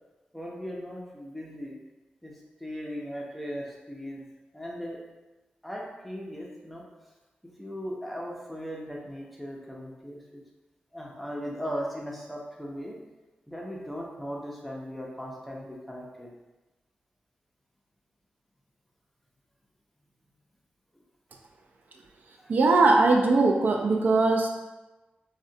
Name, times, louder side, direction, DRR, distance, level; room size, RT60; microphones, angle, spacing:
voice 1, 0.3-1.8 2.2-4.2 4.5-5.0 5.6-6.8 7.4-10.2 10.9-13.0 13.5-16.3 22.4-22.5, equal, ahead, -2 dB, 0.4 m, -38 dB
voice 2, 22.5-24.5, right 3 dB, 65° right, 1 dB, 0.3 m, -20 dB
3.6 x 2.1 x 2.6 m, 1.1 s
wide cardioid pair, 160°, 3 cm